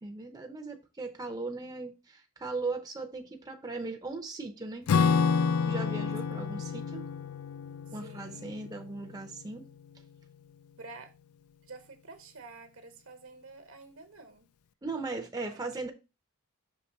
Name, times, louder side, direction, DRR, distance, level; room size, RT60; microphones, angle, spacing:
voice 1, 0.0-4.9 5.6-7.1 7.9-9.7 14.8-15.9, right 3 dB, 20° right, 0.6 m, -38 dB
Acoustic guitar / Strum, 4.9-9.7, left 5 dB, 80° left, 0.4 m, -29 dB
voice 2, 7.9-8.4 10.8-11.1 11.7-14.5 15.3-15.6, right 3 dB, 65° right, 1.2 m, -49 dB
5.9 x 3.1 x 5.2 m
head